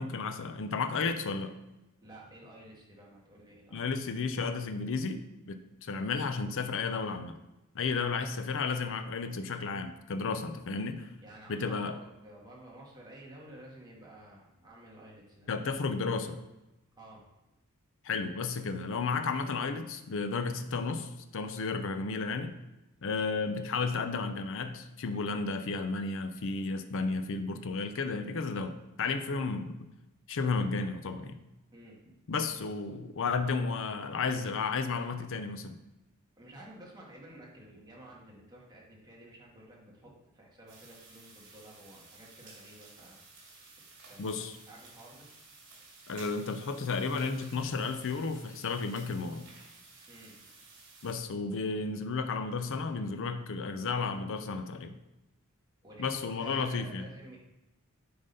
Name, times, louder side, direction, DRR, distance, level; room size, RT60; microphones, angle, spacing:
voice 1, 0.0-1.6 3.7-7.4 7.7-11.1 11.5-11.9 15.5-16.4 18.0-22.5 23.0-29.8 30.3-31.4 32.3-35.8 44.2-44.6 46.1-49.4 51.0-55.0 56.0-57.1, left 4 dB, 60° left, 8 dB, 0.6 m, -33 dB
voice 2, 2.0-3.9 11.2-15.5 16.9-17.2 29.2-29.4 31.7-32.0 36.4-43.2 44.1-44.3 44.7-45.3 50.1-50.3 55.8-57.4, right 1 dB, 20° right, -4 dB, 1.9 m, -52 dB
sound 1, 40.7-51.1, right 3 dB, 60° right, 2.8 m, -54 dB
8.8 x 3.9 x 5.4 m, 0.98 s
head